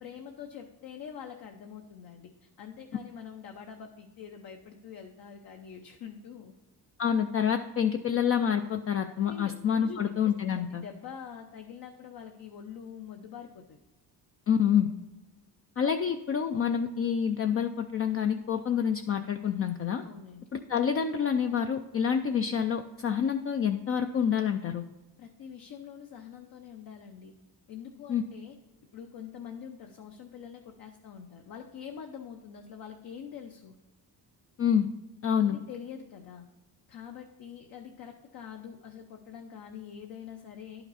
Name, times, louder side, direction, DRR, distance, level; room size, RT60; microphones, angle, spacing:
voice 1, 0.0-6.5 9.3-13.8 20.0-20.4 25.2-27.3 27.7-28.5 28.9-33.8 35.4-36.4 36.9-40.9, left 7 dB, 60° left, 4 dB, 0.8 m, -45 dB
voice 2, 7.0-10.8 14.5-14.9 15.8-20.0 20.7-24.8 28.1-28.2 34.6-34.9 35.2-35.6, left 8 dB, 35° left, 6 dB, 0.4 m, -27 dB
11.0 x 5.9 x 4.1 m, 1.0 s
cardioid pair, 150°, 40 cm